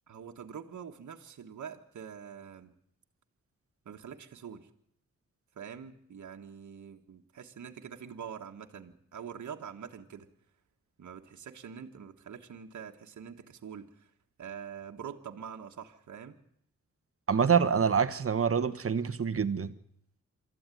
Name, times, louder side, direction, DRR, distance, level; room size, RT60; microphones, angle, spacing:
voice 1, 0.1-2.7 3.8-4.7 5.5-10.3 11.0-14.1 14.4-16.4, right 7 dB, 75° right, 3 dB, 1.6 m, -45 dB
voice 2, 17.3-19.7, right 6 dB, 50° right, 12 dB, 1.3 m, -26 dB
24.0 x 14.0 x 9.2 m, 0.71 s
cardioid pair, 80°, 30 cm